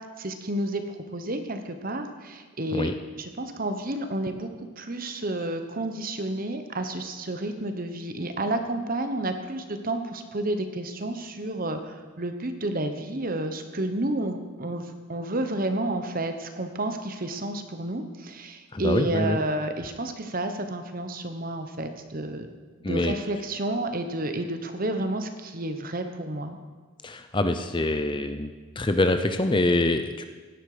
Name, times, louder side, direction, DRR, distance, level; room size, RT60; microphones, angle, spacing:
voice 1, 0.2-2.9 3.2-4.5 4.8-22.5 22.9-26.6, right 1 dB, 40° right, 7 dB, 1.1 m, -30 dB
voice 2, 18.7-19.4 22.8-23.2 27.0-30.3, left 2 dB, 20° left, 8 dB, 0.6 m, -25 dB
16.5 x 11.0 x 5.0 m, 1.4 s
head